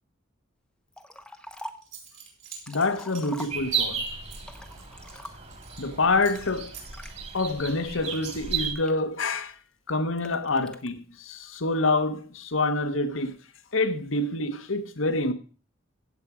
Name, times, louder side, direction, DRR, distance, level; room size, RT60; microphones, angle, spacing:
Liquid, 0.9-1.9 2.4-3.9 4.4-5.6 6.3-7.1 7.7-9.4 10.2-10.9, equal, 5° left, 0.9 m, -44 dB
Zipper (clothing) / Coin (dropping), 1.5-1.6 1.8-5.9 6.2-6.5 6.7-8.5, right 7 dB, 65° right, 4.5 m, -47 dB
voice 1, 2.7-4.0 5.8-6.7 7.3-9.6 9.9-13.4 13.7-15.3, left 2 dB, 70° left, 1.3 m, -27 dB
sound 1, 3.5-8.7, right 6 dB, 35° right, 2.5 m, -34 dB
15.5 x 7.5 x 4.9 m
head